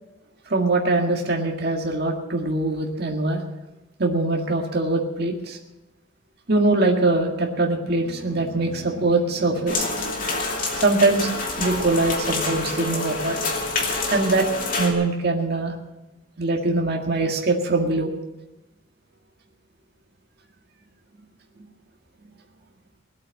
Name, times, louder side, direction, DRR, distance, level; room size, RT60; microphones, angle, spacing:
voice 1, 0.5-3.4 4.0-5.6 6.5-10.3 10.8-11.3 11.6-13.4 14.1-14.5 14.8-15.7 16.4-18.1, right 2 dB, 50° right, 1 dB, 1.9 m, -22 dB
sound 1, 9.7-14.9, left 3 dB, 45° left, 2.6 m, -27 dB
19.5 x 8.5 x 7.2 m, 1.0 s
head